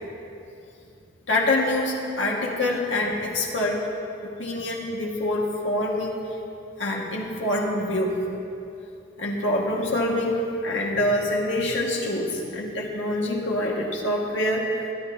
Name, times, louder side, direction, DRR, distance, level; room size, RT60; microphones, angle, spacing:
voice 1, 1.3-3.8 4.4-6.2 6.8-8.1 9.2-14.9, left 1 dB, 80° left, -2 dB, 1.9 m, -25 dB
25.0 x 10.0 x 2.9 m, 2.7 s
head